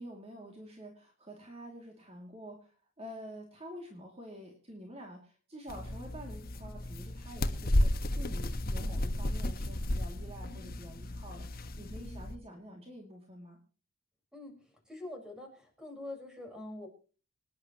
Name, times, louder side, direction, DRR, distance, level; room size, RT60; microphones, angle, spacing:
voice 1, 0.0-13.6, equal, 30° right, 1 dB, 2.5 m, -48 dB
sound 1, 5.7-12.4, left 1 dB, 45° left, 1.2 m, -33 dB
voice 2, 10.4-10.8 11.9-12.2 14.3-16.9, left 2 dB, 5° right, 3 dB, 4.8 m, -45 dB
26.0 x 10.5 x 3.0 m, 0.37 s
head